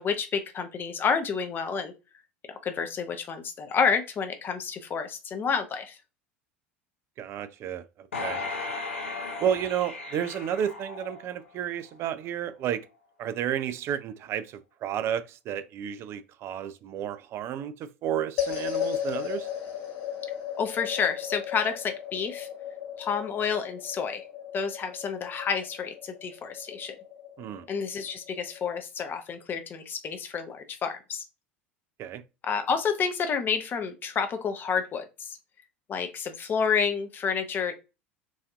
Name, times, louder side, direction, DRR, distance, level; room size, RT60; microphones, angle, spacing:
voice 1, 0.0-1.9 2.5-6.0 20.6-22.5 23.0-24.2 24.5-26.9 27.7-31.2 32.4-35.4 35.9-37.7, left 6 dB, 30° left, 0.7 m, -29 dB
voice 2, 7.2-8.4 9.4-12.9 13.2-19.5 27.4-27.7 32.0-32.2, right 9 dB, 40° right, 0.4 m, -32 dB
sound 1, 8.1-11.6 12.0-12.1, left 3 dB, 75° left, 0.6 m, -36 dB
sound 2, 18.4-28.8, left 10 dB, 50° left, 1.0 m, -36 dB
4.0 x 2.6 x 2.3 m
figure-of-eight pair, 75°, 7 cm